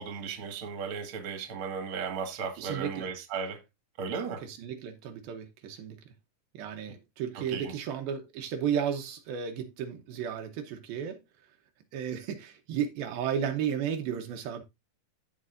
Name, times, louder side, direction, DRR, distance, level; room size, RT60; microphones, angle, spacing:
voice 1, 0.0-3.6 4.0-4.4 6.9-7.0 7.4-7.7, right 5 dB, 45° right, 2.2 m, -35 dB
voice 2, 2.6-3.1 4.4-6.1 6.5-11.2 11.9-14.6, right 8 dB, 80° right, 2.7 m, -33 dB
14.0 x 5.2 x 2.5 m
omnidirectional pair, 4.3 m